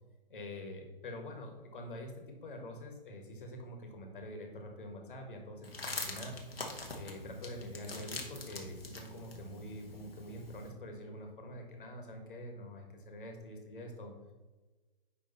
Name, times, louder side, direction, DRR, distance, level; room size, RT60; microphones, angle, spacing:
voice 1, 0.3-6.4 6.9-14.1, left 1 dB, 60° left, 2 dB, 1.8 m, -46 dB
sound 1, 5.6-10.7, left 2 dB, 90° left, 1.5 m, -44 dB
9.9 x 3.6 x 4.0 m, 1.2 s
figure-of-eight pair, 130°, 29 cm